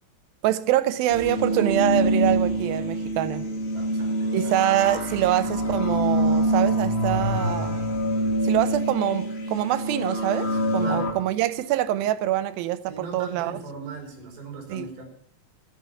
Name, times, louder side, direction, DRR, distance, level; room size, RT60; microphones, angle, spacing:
voice 1, 0.4-3.5 4.3-7.8 8.4-13.5 14.7-14.9, right 13 dB, 85° right, 2.5 m, -25 dB
sound 1, 1.1-11.1, right 1 dB, 30° left, 1.2 m, -25 dB
voice 2, 3.7-4.9 10.8-11.1 12.9-15.0, right 3 dB, 60° right, 4.7 m, -39 dB
13.0 x 8.8 x 6.8 m
omnidirectional pair, 4.1 m